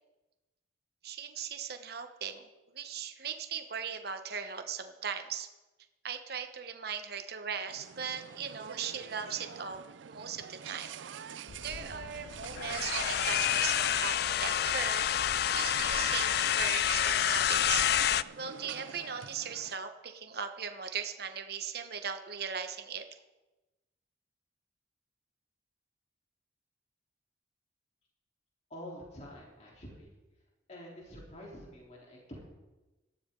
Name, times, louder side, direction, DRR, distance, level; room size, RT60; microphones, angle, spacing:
voice 1, 1.0-5.5 6.0-9.8 10.1-11.3 11.6-15.1 15.5-23.0, right 7 dB, 55° right, 7 dB, 1.1 m, -38 dB
sound 1, 7.7-19.8, right 8 dB, 75° right, 0.5 m, -45 dB
sound 2, 11.5-18.2, left 10 dB, 55° left, 0.3 m, -29 dB
voice 2, 28.7-30.2 30.7-32.4, equal, 35° left, -3 dB, 3.6 m, -47 dB
18.5 x 13.5 x 3.9 m, 1.1 s
head